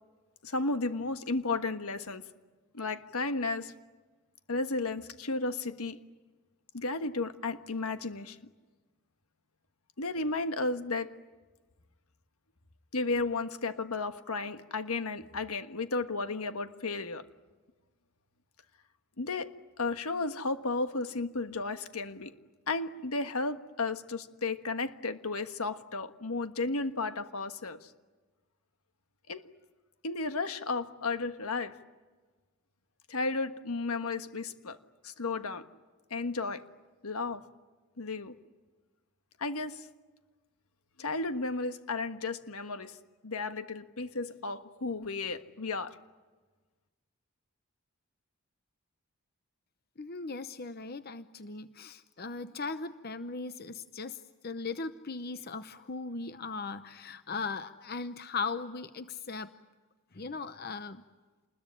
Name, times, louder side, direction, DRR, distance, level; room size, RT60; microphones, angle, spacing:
voice 1, 0.4-2.3 2.7-3.7 4.5-6.0 6.7-8.4 10.0-11.1 12.9-17.2 19.2-22.4 22.7-27.9 29.3-29.5 30.0-31.8 33.1-34.8 35.0-35.6 36.1-36.7 37.0-37.5 38.0-38.4 39.4-39.9 41.0-43.0 43.2-46.0, left 3 dB, 80° left, 1.5 m, -33 dB
voice 2, 50.0-59.5 60.1-61.0, left 4 dB, 45° left, 0.8 m, -38 dB
28.5 x 21.0 x 9.9 m
head